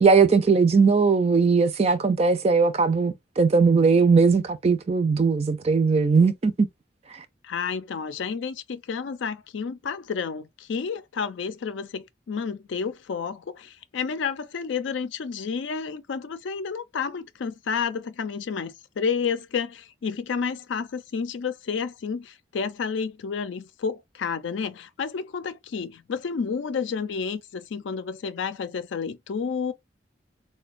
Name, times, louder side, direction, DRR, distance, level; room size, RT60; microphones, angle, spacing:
voice 1, 0.0-6.5, right 4 dB, 35° right, 0.4 m, -19 dB
voice 2, 7.4-29.7, left 6 dB, 85° left, 0.4 m, -30 dB
3.8 x 2.1 x 2.4 m
head